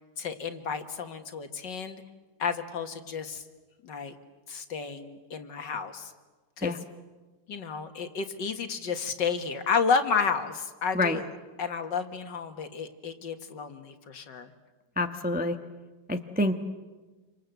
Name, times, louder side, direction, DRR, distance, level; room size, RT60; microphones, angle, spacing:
voice 1, 0.2-2.0 2.4-3.4 3.8-4.1 4.5-6.1 6.6-6.8 7.5-11.3 11.6-14.5, left 5 dB, 65° left, 7 dB, 2.2 m, -31 dB
voice 2, 15.0-15.6 16.1-16.6, left 2 dB, 5° right, 6 dB, 0.8 m, -27 dB
27.5 x 25.5 x 8.1 m, 1.3 s
omnidirectional pair, 2.1 m